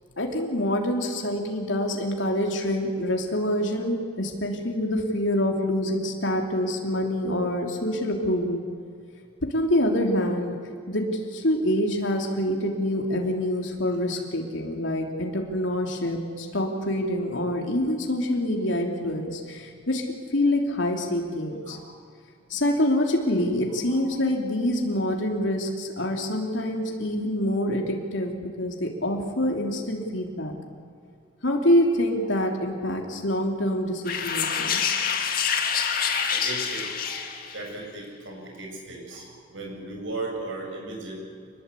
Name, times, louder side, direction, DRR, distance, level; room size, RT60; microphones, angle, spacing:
voice 1, 0.2-8.6 9.5-10.6 10.9-21.8 22.5-30.5 31.4-34.8, left 1 dB, 80° left, 1 dB, 3.2 m, -26 dB
sound 1, 34.1-37.7, left 7 dB, 50° left, 2.1 m, -26 dB
voice 2, 36.3-37.2 37.5-41.2, right 2 dB, 90° right, 0 dB, 7.9 m, -36 dB
26.0 x 21.0 x 8.4 m, 2.2 s
head